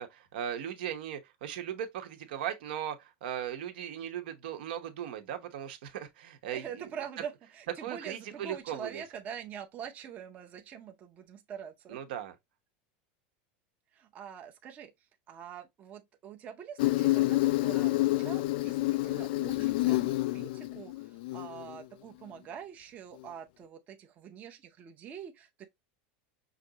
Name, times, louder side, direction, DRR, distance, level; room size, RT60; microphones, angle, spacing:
voice 1, 0.0-6.9 7.8-9.0 11.9-12.3, right 9 dB, 80° right, 1.0 m, -38 dB
voice 2, 6.5-12.0 13.9-14.9 15.3-25.7, right 8 dB, 30° right, 0.6 m, -45 dB
Insect, 16.8-21.8, left 18 dB, 70° left, 0.4 m, -28 dB
5.8 x 2.6 x 2.8 m
supercardioid pair, 150°, 5 cm